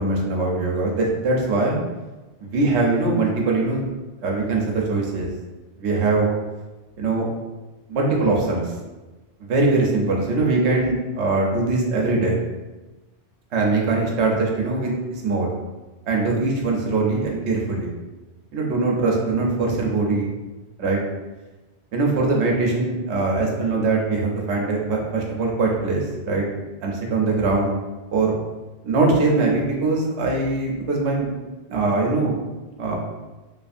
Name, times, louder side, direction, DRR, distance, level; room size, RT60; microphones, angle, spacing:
voice 1, 0.0-1.8 2.5-3.8 4.2-5.3 5.8-6.3 7.0-7.3 7.9-8.6 9.5-12.3 13.5-15.5 16.1-17.9 18.5-20.3 20.8-21.0 21.9-26.5 26.8-27.8 28.1-28.4 28.8-31.3 31.7-32.4 32.8-33.0, right 3 dB, 80° right, -1 dB, 0.9 m, -22 dB
2.7 x 2.5 x 2.4 m, 1.2 s
omnidirectional pair, 1.1 m